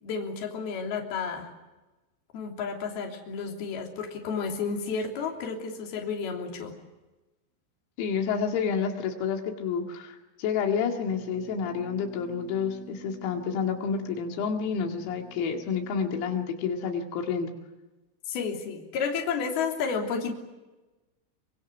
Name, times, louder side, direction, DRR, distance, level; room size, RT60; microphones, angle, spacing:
voice 1, 0.0-1.5 2.3-6.8 18.3-20.3, left 5 dB, 50° left, 1 dB, 4.7 m, -31 dB
voice 2, 8.0-17.5, left 6 dB, 85° left, 3 dB, 4.9 m, -29 dB
sound 1, 11.0-16.5, right 5 dB, 50° right, 6.0 m, -50 dB
24.5 x 24.5 x 8.1 m, 1.1 s
omnidirectional pair, 6.0 m